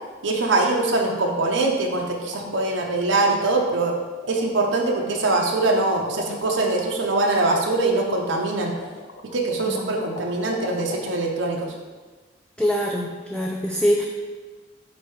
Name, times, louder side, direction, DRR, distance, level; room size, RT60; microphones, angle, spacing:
voice 1, 0.2-3.9 4.3-8.7 9.3-11.7, right 2 dB, 90° right, 1 dB, 0.7 m, -23 dB
sound 1, 2.0-11.1, left 3 dB, 90° left, 0.7 m, -37 dB
voice 2, 9.7-10.0 12.6-14.0, equal, 5° left, -2 dB, 0.4 m, -24 dB
8.0 x 2.8 x 4.6 m, 1.4 s
head